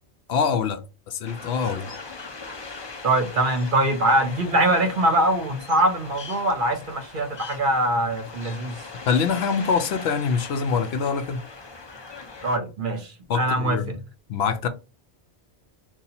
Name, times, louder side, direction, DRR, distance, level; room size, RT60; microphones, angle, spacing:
voice 1, 0.3-1.9 9.1-11.4 13.3-14.0 14.3-14.7, left 6 dB, 70° left, 0.8 m, -24 dB
sound 1, 1.2-12.6, left 4 dB, 35° left, 0.5 m, -40 dB
voice 2, 3.0-8.8 12.4-13.8, right 1 dB, 55° right, 0.8 m, -23 dB
2.7 x 2.3 x 4.0 m
omnidirectional pair, 1.1 m